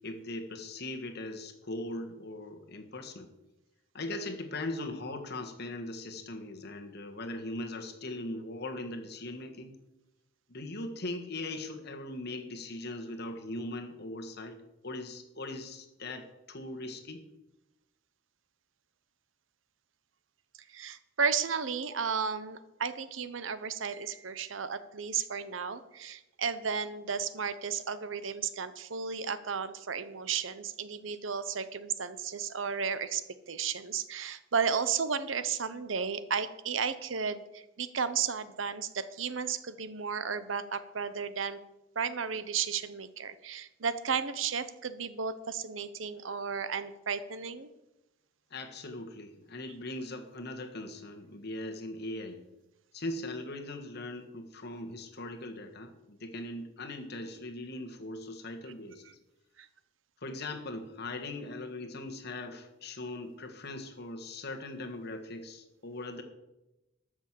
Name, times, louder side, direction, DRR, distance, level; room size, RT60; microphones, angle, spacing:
voice 1, 0.0-3.3 3.9-9.7 10.5-14.6 14.8-17.2 48.5-52.4 52.9-59.0 60.2-66.2, left 2 dB, 60° left, 5 dB, 1.6 m, -40 dB
voice 2, 20.7-41.6 41.9-47.7 59.6-59.7, right 6 dB, 85° right, 13 dB, 0.8 m, -33 dB
12.5 x 6.3 x 7.4 m, 0.97 s
head